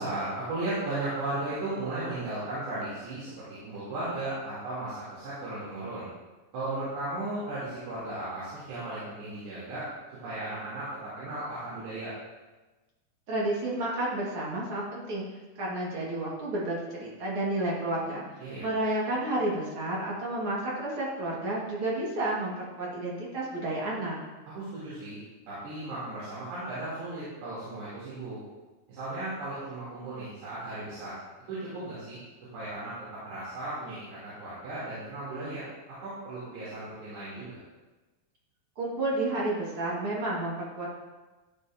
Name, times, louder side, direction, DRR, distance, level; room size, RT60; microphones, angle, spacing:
voice 1, 0.0-6.1 6.5-9.9 10.2-12.1 18.4-18.7 24.5-25.2 25.5-28.4 28.9-31.2 31.5-32.2 32.5-35.6 36.0-37.5, right 2 dB, 85° right, -11 dB, 4.8 m, -36 dB
voice 2, 13.3-15.2 15.6-18.2 18.6-24.2 38.8-40.9, right 1 dB, 55° right, -5 dB, 1.5 m, -31 dB
13.5 x 7.3 x 2.6 m, 1.2 s
omnidirectional pair, 4.7 m